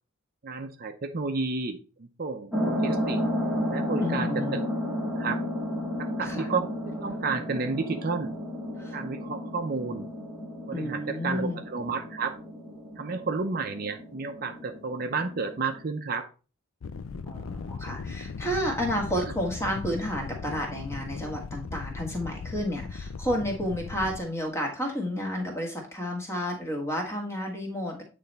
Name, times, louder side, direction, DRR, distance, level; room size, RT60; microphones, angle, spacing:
voice 1, 0.4-3.2 3.7-4.6 5.2-5.4 6.0-6.7 7.0-8.3 8.9-10.1 10.7-12.4 13.0-16.3 19.2-19.3, right 4 dB, 45° right, 7 dB, 0.5 m, -31 dB
sound 1, 2.5-15.8, equal, 5° right, 1.2 m, -33 dB
voice 2, 4.0-4.6 6.2-6.5 8.8-9.0 10.7-11.6 17.3-28.0, equal, 15° left, 1 dB, 1.5 m, -31 dB
sound 2, 16.8-24.2, left 5 dB, 75° left, 0.4 m, -38 dB
8.6 x 3.3 x 4.0 m, 0.35 s
head